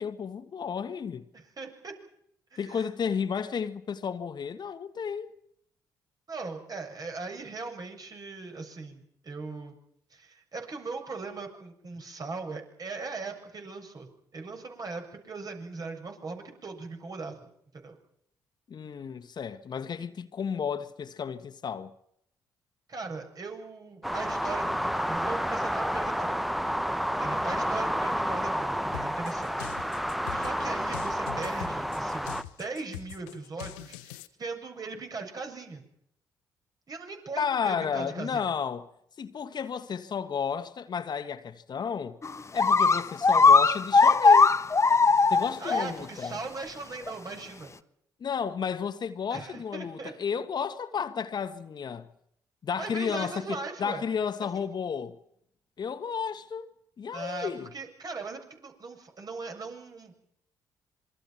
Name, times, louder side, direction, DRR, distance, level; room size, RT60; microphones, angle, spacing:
voice 1, 0.0-1.2 2.6-5.3 18.7-21.9 37.4-38.9 39.2-42.2 42.5-44.5 45.3-46.4 48.2-52.1 52.6-55.2 55.8-56.7 57.0-57.7, left 7 dB, 50° left, 1.6 m, -32 dB
voice 2, 1.3-1.9 2.5-2.8 6.3-9.7 10.1-18.0 22.9-26.4 27.2-29.7 30.3-35.8 36.9-38.5 45.6-47.7 49.3-50.1 52.8-54.0 54.4-54.5 57.1-60.1, right 3 dB, 45° right, 7.3 m, -39 dB
sound 1, 24.0-32.4, equal, ahead, 1.2 m, -30 dB
sound 2, 28.9-34.3, left 13 dB, 85° left, 1.2 m, -43 dB
sound 3, 42.2-42.3 42.6-45.8 46.2-46.3 47.1-47.2, left 4 dB, 30° left, 1.2 m, -19 dB
27.0 x 23.0 x 5.9 m
hypercardioid pair, 50°, 9 cm